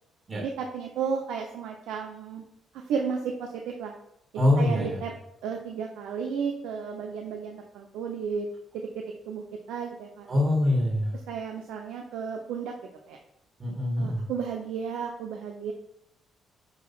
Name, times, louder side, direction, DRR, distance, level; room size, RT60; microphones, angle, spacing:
voice 1, 0.4-2.4 2.7-3.9 4.6-5.1 5.4-8.5 8.7-10.3 11.3-12.7 13.1-13.2 14.0-15.7, right 6 dB, 90° right, 2 dB, 0.9 m, -33 dB
voice 2, 4.4-5.0 10.3-11.1 13.6-14.2, left 1 dB, 40° right, -2 dB, 2.5 m, -24 dB
9.3 x 3.3 x 5.6 m, 0.82 s
cardioid pair, 90°, 0 cm